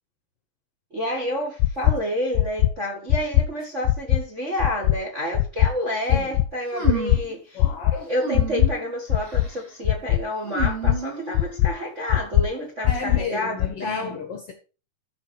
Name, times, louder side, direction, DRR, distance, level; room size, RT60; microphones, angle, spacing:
voice 1, 0.9-7.6 8.1-14.1, equal, 35° right, 1.2 m, -29 dB
sound 1, 1.6-1.9 2.3-2.7 3.1-3.4 3.8-4.2 4.6-4.9 5.3-5.7 6.1-6.5 6.8-7.2 7.6-7.9 8.3-8.7 9.1-9.4 9.8-10.2 10.6-10.9 11.3-11.7 12.1-12.4 12.8-13.2 13.6-13.7, left 15 dB, 85° left, 2.3 m, -19 dB
voice 2, 6.1-6.4 7.5-8.1 12.8-14.5, left 5 dB, 60° left, 1.6 m, -33 dB
sound 2, 6.7-7.3 8.1-8.8 9.2-9.6 10.4-11.6, right 5 dB, 20° right, 2.0 m, -31 dB
13.5 x 5.7 x 4.5 m
omnidirectional pair, 4.0 m